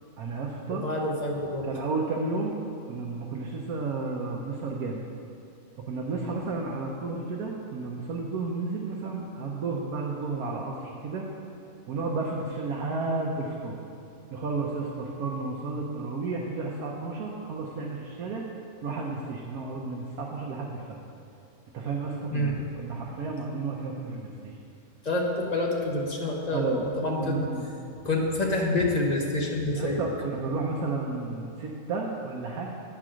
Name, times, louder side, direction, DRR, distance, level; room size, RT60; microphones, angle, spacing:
voice 1, 0.2-0.8 1.7-2.5 2.9-5.0 5.8-11.3 11.9-13.8 14.3-18.4 18.8-21.0 21.7-24.6 26.5-27.6 29.7-32.7, right 3 dB, 80° right, -2 dB, 1.3 m, -32 dB
voice 2, 0.7-1.7 22.3-22.6 25.0-27.5 28.0-30.0, left 1 dB, 35° left, -1 dB, 0.8 m, -27 dB
8.9 x 4.8 x 6.2 m, 2.7 s
omnidirectional pair, 1.5 m